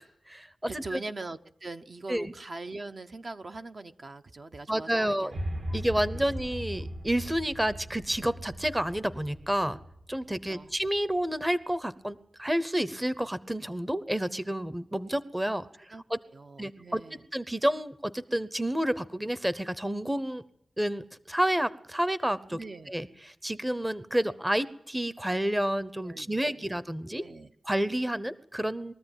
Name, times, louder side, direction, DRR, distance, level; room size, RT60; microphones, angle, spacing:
voice 1, 0.0-1.0 2.1-2.3 4.7-5.3 5.7-9.8 10.1-16.2 16.6-17.0 17.3-20.4 20.8-22.6 22.9-27.2 27.6-28.9, right 1 dB, 10° right, 14 dB, 0.7 m, -30 dB
voice 2, 0.8-5.4 5.7-6.2 10.4-10.7 15.9-16.0 16.3-17.2 22.5-22.9 26.0-26.7 27.1-27.5, right 3 dB, 45° right, 7 dB, 0.8 m, -42 dB
sound 1, 5.3-11.5, equal, 65° right, 2.5 m, -39 dB
22.0 x 14.0 x 9.0 m, 0.73 s
wide cardioid pair, 130°, 0 cm